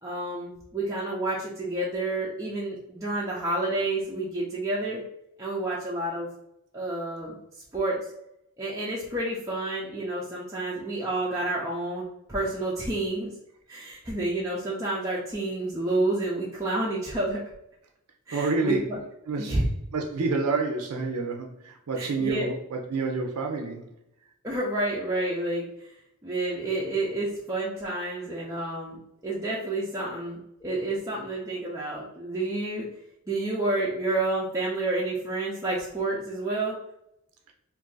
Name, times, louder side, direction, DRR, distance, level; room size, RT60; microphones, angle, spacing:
voice 1, 0.0-5.0 5.4-6.3 6.7-7.4 7.7-8.0 8.6-12.0 12.3-13.3 13.7-17.4 18.3-19.0 19.4-19.6 22.0-22.5 24.4-25.7 26.2-29.0 29.2-32.9 33.3-36.8, right 2 dB, 15° right, -6 dB, 0.4 m, -29 dB
voice 2, 18.3-18.9 19.3-19.6 19.9-23.9, right 3 dB, 80° right, 2 dB, 0.5 m, -28 dB
2.5 x 2.4 x 3.8 m, 0.80 s
head